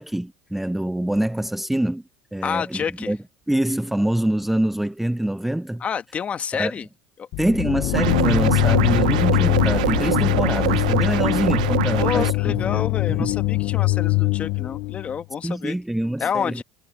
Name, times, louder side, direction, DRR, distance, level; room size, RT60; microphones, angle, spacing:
voice 1, 0.0-2.0 2.3-3.2 3.5-5.8 6.5-6.7 7.4-12.8 13.1-13.3 15.4-16.6, right 1 dB, 5° right, 0.4 m, -25 dB
voice 2, 2.4-3.1 5.8-6.9 7.2-7.3 12.0-15.8 16.2-16.6, left 7 dB, 35° left, 1.6 m, -28 dB
sound 1, 7.3-15.2, left 24 dB, 65° left, 0.4 m, -22 dB
sound 2, 7.9-12.3, right 16 dB, 85° right, 0.5 m, -24 dB
supercardioid pair, 100°, 4 cm